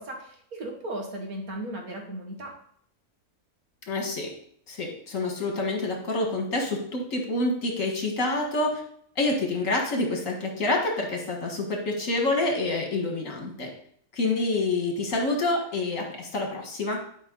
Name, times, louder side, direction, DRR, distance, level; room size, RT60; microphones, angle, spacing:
voice 1, 0.0-2.5, right 1 dB, 70° right, 1 dB, 2.1 m, -36 dB
voice 2, 3.9-4.3 4.7-8.8 9.2-13.7 14.1-17.0, left 2 dB, 60° left, 1 dB, 2.1 m, -27 dB
11.5 x 5.3 x 3.9 m, 0.63 s
omnidirectional pair, 1.6 m